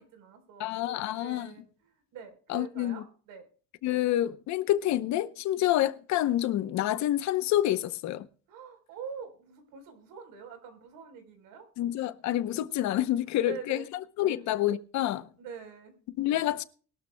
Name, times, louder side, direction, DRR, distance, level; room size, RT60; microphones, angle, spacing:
voice 1, 0.0-3.5 8.5-11.7 13.3-13.9 14.2-14.4 15.4-16.0, right 6 dB, 70° right, 4.1 m, -45 dB
voice 2, 0.6-1.5 2.5-3.0 3.8-8.3 11.8-13.8 14.2-15.3 16.2-16.6, left 13 dB, 55° left, 0.8 m, -28 dB
21.0 x 12.5 x 2.2 m
cardioid pair, 170°, 34 cm